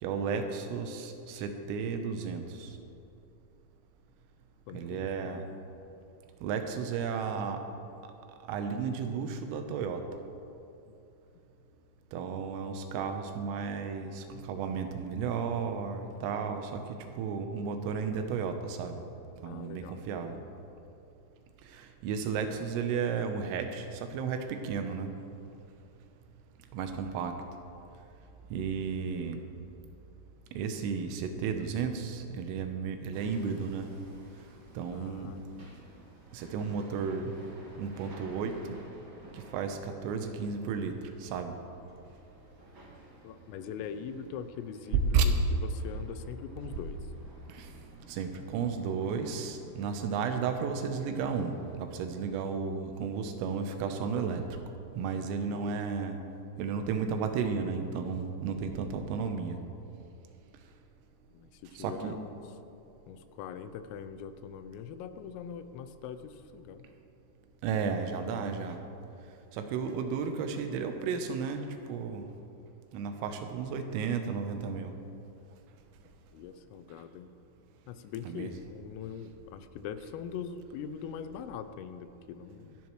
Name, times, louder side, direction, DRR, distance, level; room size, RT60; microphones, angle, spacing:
voice 1, 0.0-2.8 4.7-5.5 6.4-7.6 8.5-10.0 12.1-19.0 19.4-20.4 21.6-25.1 26.7-27.4 28.5-29.4 30.5-33.9 34.8-35.3 36.3-37.4 37.8-38.8 39.3-41.6 45.1-45.3 47.5-47.7 48.1-54.5 55.0-56.2 56.6-59.6 61.8-62.2 67.6-68.8 69.5-72.3 72.9-74.9 78.3-78.5, right 6 dB, 85° right, 6 dB, 3.6 m, -33 dB
voice 2, 4.7-5.4 10.9-11.0 19.4-20.0 34.9-35.9 43.2-47.0 55.5-55.6 61.3-62.4 63.1-66.8 76.3-77.3 77.9-82.8, left 7 dB, 90° left, 10 dB, 3.3 m, -42 dB
Hammer, 33.1-51.7, right 2 dB, 65° right, 1.2 m, -54 dB
25.0 x 10.5 x 3.2 m, 2.7 s
omnidirectional pair, 5.8 m